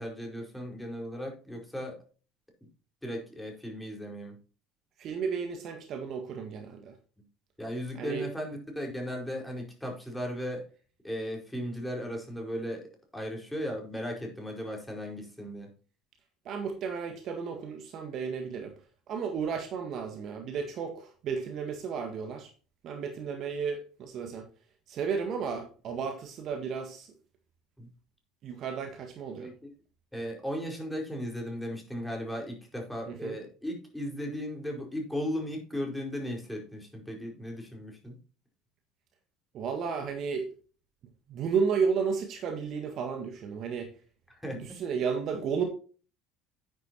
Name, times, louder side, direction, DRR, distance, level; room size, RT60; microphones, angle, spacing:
voice 1, 0.0-2.0 3.0-4.4 7.6-10.6 11.0-12.8 13.1-15.7 27.8-27.9 29.4-29.5 30.1-38.2 44.3-44.6, equal, 5° left, 1 dB, 4.8 m, -36 dB
voice 2, 5.0-6.9 7.9-8.3 16.4-18.7 19.1-22.5 22.8-24.4 24.9-27.1 28.4-29.5 33.1-33.4 39.5-40.5 41.3-43.9 44.5-45.6, right 6 dB, 45° right, 5 dB, 1.6 m, -33 dB
10.5 x 9.9 x 2.9 m, 0.37 s
figure-of-eight pair, 65°, 0 cm